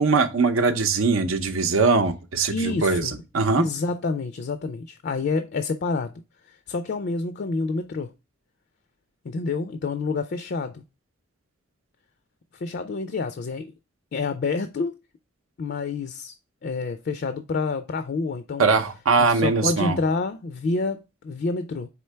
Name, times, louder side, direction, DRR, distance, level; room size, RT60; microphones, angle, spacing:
voice 1, 0.0-3.7 18.6-20.0, right 4 dB, 80° right, 0.7 m, -21 dB
voice 2, 2.5-3.2 3.6-6.1 6.4-8.1 9.2-10.8 12.5-13.7 14.1-15.0 15.6-16.3 16.6-18.7 19.2-21.9, left 3 dB, 50° left, 0.4 m, -28 dB
4.4 x 3.6 x 3.2 m
head